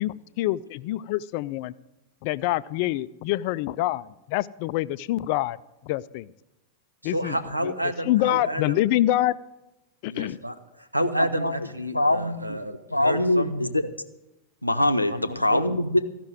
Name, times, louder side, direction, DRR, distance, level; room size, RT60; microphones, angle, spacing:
voice 1, 0.0-1.7 2.2-5.6 5.8-6.3 7.0-7.4 7.6-7.7 8.0-9.3 10.0-10.4, left 15 dB, 45° left, 17 dB, 0.4 m, -26 dB
voice 2, 7.0-8.8 10.1-13.5 15.1-15.8, right 1 dB, 85° right, 8 dB, 0.9 m, -30 dB
voice 3, 11.1-11.7 11.9-12.6 12.9-13.8 14.6-16.0, left 1 dB, 85° left, 9 dB, 0.7 m, -23 dB
14.5 x 6.0 x 9.3 m, 0.96 s
figure-of-eight pair, 90°, 0 cm